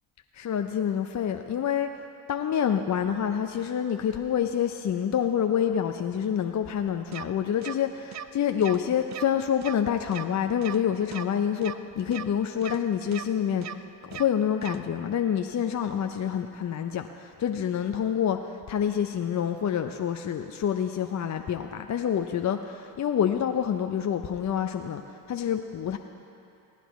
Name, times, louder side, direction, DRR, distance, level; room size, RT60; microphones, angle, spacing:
voice 1, 0.3-2.0 2.3-26.0, left 8 dB, 35° left, 6 dB, 0.5 m, -27 dB
sound 1, 7.1-7.2 7.6-7.7 8.1-8.2 8.6-8.8 9.1-9.2 9.6-9.7 10.1-10.2 10.6-10.8 11.1-11.2 11.6-11.7 12.1-12.2 12.6-12.8 13.1-13.2 13.6-13.7 14.1-14.2 14.6-14.8, right 9 dB, 35° right, 0.5 m, -37 dB
19.5 x 9.2 x 3.1 m, 2.8 s
supercardioid pair, 55°, 49 cm